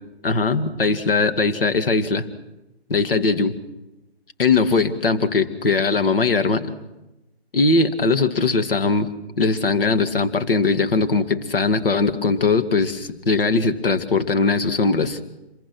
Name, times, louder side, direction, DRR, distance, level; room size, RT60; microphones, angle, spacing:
voice 1, 0.2-2.3 2.9-3.5 4.4-6.8 7.5-9.1 9.4-15.2, left 4 dB, 60° left, 8 dB, 2.4 m, -20 dB
26.5 x 22.5 x 6.2 m, 0.97 s
figure-of-eight pair, 155°, 32 cm